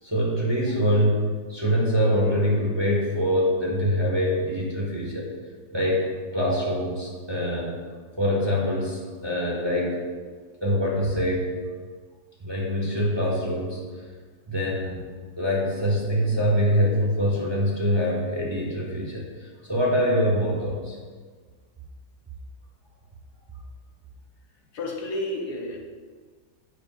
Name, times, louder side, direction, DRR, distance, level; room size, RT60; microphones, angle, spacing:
voice 1, 0.0-5.3 5.7-7.7 8.2-10.0 10.6-11.6 12.4-14.0 14.5-15.0 15.4-21.0, equal, 15° right, -4 dB, 1.4 m, -24 dB
voice 2, 24.7-25.8, left 1 dB, 65° left, 0 dB, 1.5 m, -31 dB
10.0 x 8.0 x 2.5 m, 1.5 s
omnidirectional pair, 1.9 m